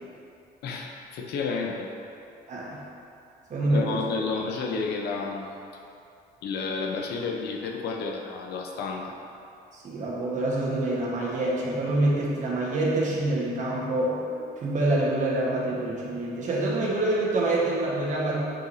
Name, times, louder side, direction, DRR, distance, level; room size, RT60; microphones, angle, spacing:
voice 1, 0.6-1.9 3.6-5.5 6.4-9.1, left 4 dB, 75° left, 1 dB, 0.8 m, -31 dB
voice 2, 2.5-2.8 3.5-4.0 9.7-18.4, right 2 dB, 45° right, -4 dB, 1.4 m, -26 dB
7.5 x 4.7 x 2.7 m, 2.6 s
cardioid pair, 110°, 17 cm